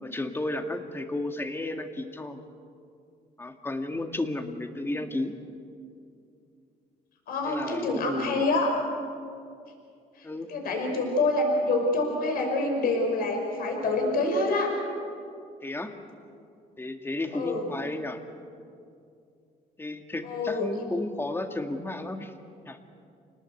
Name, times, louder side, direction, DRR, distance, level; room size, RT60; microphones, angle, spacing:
voice 1, 0.0-2.4 3.4-5.3 7.4-8.4 10.2-10.5 15.6-15.9 16.8-18.2 19.8-22.3 22.7-22.8, left 2 dB, 15° left, 6 dB, 2.0 m, -33 dB
voice 2, 7.3-8.7 10.2-14.7 17.3-17.7 20.2-20.7, left 2 dB, 60° left, 1 dB, 5.5 m, -26 dB
28.0 x 19.0 x 8.2 m, 2.4 s
cardioid pair, 110°, 17 cm